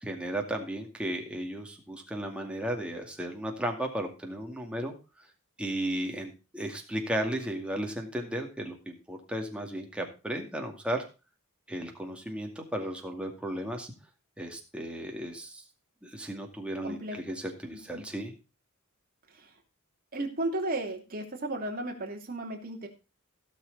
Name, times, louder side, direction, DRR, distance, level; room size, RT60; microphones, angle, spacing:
voice 1, 0.0-4.9 5.6-11.0 11.7-13.9 14.4-15.6 16.0-18.3, right 1 dB, 5° right, 1 dB, 2.2 m, -35 dB
voice 2, 16.8-17.4 17.7-18.0 19.3-19.5 20.1-22.9, right 2 dB, 40° right, 2 dB, 2.8 m, -35 dB
16.5 x 6.5 x 4.1 m, 0.31 s
head